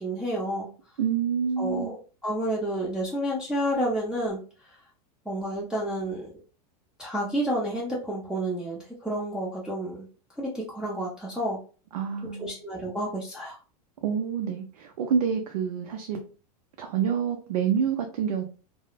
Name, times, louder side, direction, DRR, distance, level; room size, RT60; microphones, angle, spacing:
voice 1, 0.0-0.7 1.6-2.0 2.2-4.4 5.3-6.3 7.0-10.1 10.4-11.6 12.3-13.6, right 1 dB, 5° right, -6 dB, 0.5 m, -30 dB
voice 2, 1.0-1.9 11.9-12.6 14.0-16.2 16.8-18.4, right 7 dB, 80° right, 4 dB, 0.5 m, -27 dB
3.0 x 2.0 x 2.2 m, 0.37 s
hypercardioid pair, 120°, 20 cm